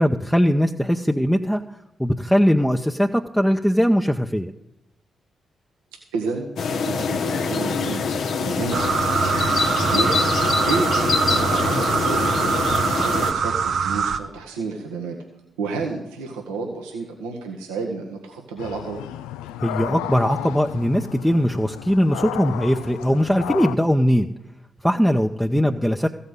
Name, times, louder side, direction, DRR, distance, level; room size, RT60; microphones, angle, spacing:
voice 1, 0.0-1.6 2.0-4.5 19.6-24.3 24.8-26.1, equal, ahead, 3 dB, 0.8 m, -20 dB
voice 2, 6.1-8.0 8.4-8.8 9.8-10.3 10.7-15.2 15.6-19.0 25.5-25.7, right 4 dB, 90° right, 0 dB, 1.3 m, -30 dB
sound 1, 6.6-13.3, left 5 dB, 70° left, 1.0 m, -24 dB
sound 2, 8.7-14.2, right 6 dB, 65° right, 0.7 m, -23 dB
sound 3, 18.6-23.8, left 13 dB, 85° left, 0.3 m, -33 dB
14.5 x 5.5 x 8.2 m, 0.91 s
hypercardioid pair, 40°, 0 cm